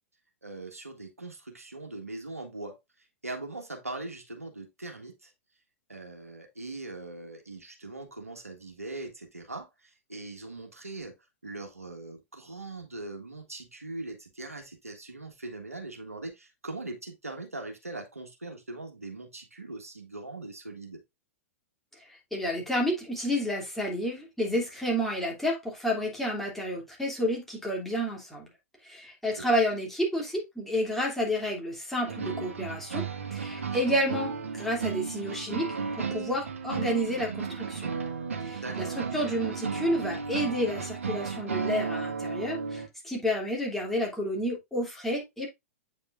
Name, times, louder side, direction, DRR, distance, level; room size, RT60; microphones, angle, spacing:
voice 1, 0.4-2.8 3.2-5.3 5.9-11.1 11.4-21.0 29.4-29.5 38.6-39.0, right 2 dB, 90° right, 1.6 m, -41 dB
voice 2, 22.3-28.5 28.8-33.0 33.3-35.7 36.0-37.9 38.4-45.5, equal, 5° left, 3.0 m, -30 dB
sound 1, 32.0-42.9, right 5 dB, 70° right, 1.6 m, -34 dB
8.4 x 5.2 x 2.6 m
figure-of-eight pair, 105°, 8 cm